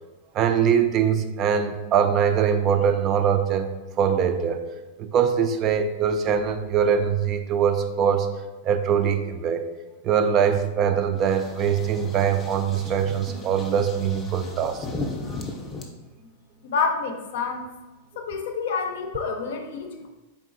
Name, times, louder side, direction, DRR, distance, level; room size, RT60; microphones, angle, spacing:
voice 1, 0.3-3.7 4.0-4.6 5.0-8.3 8.6-9.6 10.0-14.9, right 7 dB, 35° right, 8 dB, 0.3 m, -22 dB
sound 1, 11.2-15.8, left 2 dB, 20° left, 0.5 m, -36 dB
voice 2, 16.6-17.7 18.2-20.1, left 5 dB, 75° left, 5 dB, 0.6 m, -28 dB
3.9 x 3.6 x 2.5 m, 1.1 s
supercardioid pair, 140°, 0 cm